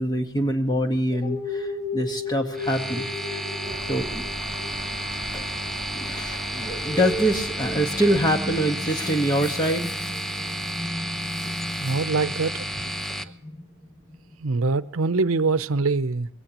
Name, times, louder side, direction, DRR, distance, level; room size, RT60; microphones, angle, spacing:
voice 1, 0.0-3.4 3.9-4.2 5.3-5.4 5.9-10.1 11.4-11.5, equal, 20° left, 1.5 m, -25 dB
sound 1, 1.2-14.3, left 1 dB, 70° left, 6.0 m, -36 dB
sound 2, 2.5-13.2, equal, ahead, 0.8 m, -32 dB
Car passing by / Engine, 3.6-8.6, right 2 dB, 35° right, 1.5 m, -41 dB
voice 2, 11.8-12.8 13.1-13.2 14.4-16.3, right 3 dB, 85° right, 0.7 m, -24 dB
22.0 x 17.0 x 3.0 m
head